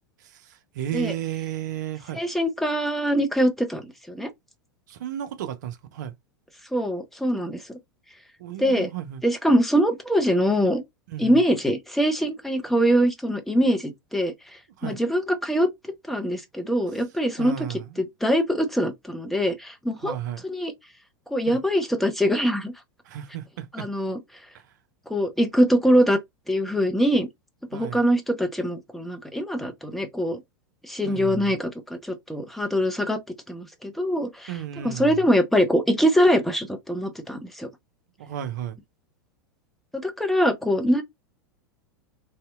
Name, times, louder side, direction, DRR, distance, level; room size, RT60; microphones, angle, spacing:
voice 1, 0.2-2.2 4.9-6.1 8.4-9.2 11.1-11.4 14.8-15.0 17.4-18.1 20.0-20.4 21.5-21.6 23.0-23.9 24.5-24.7 27.7-28.0 31.0-31.6 34.5-35.3 38.2-38.8, right 10 dB, 55° right, 0.5 m, -34 dB
voice 2, 2.2-4.3 6.7-7.6 8.6-8.9 9.2-10.8 11.2-14.3 14.8-15.7 16.1-17.5 18.2-20.1 20.4-20.7 21.3-22.7 23.7-24.2 25.1-26.2 26.5-27.3 27.7-30.4 30.8-33.2 33.5-34.5 34.8-37.7 39.9-41.0, equal, ahead, 0.5 m, -23 dB
2.7 x 2.1 x 2.3 m
figure-of-eight pair, 90°, 11 cm